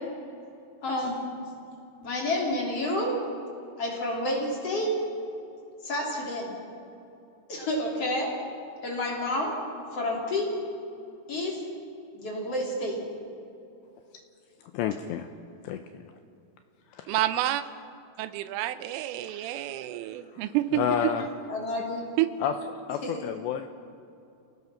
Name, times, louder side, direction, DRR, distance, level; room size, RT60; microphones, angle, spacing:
voice 1, 0.8-1.2 2.0-3.2 3.8-4.9 5.8-6.6 7.5-8.3 8.8-9.5 9.9-10.5 11.3-11.6 12.1-13.0 21.5-22.0 23.0-23.2, left 1 dB, 35° left, -2 dB, 3.6 m, -29 dB
voice 2, 14.7-15.3 15.6-16.1 16.9-17.1 19.3-19.9 20.3-20.4 20.7-21.3 22.4-22.5 22.9-23.7, left 9 dB, 90° left, 7 dB, 2.5 m, -30 dB
voice 3, 17.1-17.6 18.2-21.1 22.2-22.3, right 13 dB, 85° right, 12 dB, 3.2 m, -28 dB
28.5 x 18.0 x 5.7 m, 2.7 s
omnidirectional pair, 5.8 m